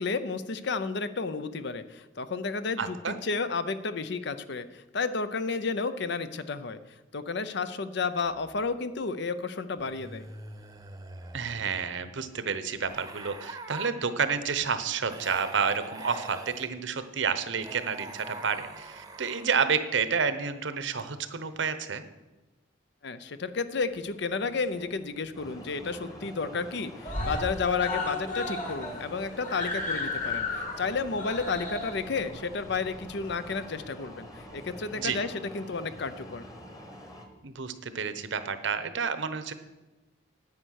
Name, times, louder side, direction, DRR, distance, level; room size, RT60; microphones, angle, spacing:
voice 1, 0.0-4.7 4.9-6.8 7.1-10.2 23.0-34.3 34.5-36.4, left 4 dB, 60° left, 12 dB, 0.6 m, -32 dB
voice 2, 2.8-3.2 11.3-22.0 35.0-35.2 37.4-39.5, right 6 dB, 65° right, 11 dB, 0.8 m, -30 dB
sound 1, 8.2-8.8 9.8-11.7 12.9-13.9 15.1-16.7 17.6-19.6, right 2 dB, 20° right, 0.8 m, -44 dB
Screaming, 24.1-25.1 25.4-25.5 25.8-25.9 26.2-26.7 27.0-33.8 34.7-34.8, left 2 dB, 40° left, 2.4 m, -35 dB
sound 2, 25.3-37.3, left 1 dB, 20° left, 1.4 m, -46 dB
9.6 x 8.9 x 6.5 m, 1.1 s
head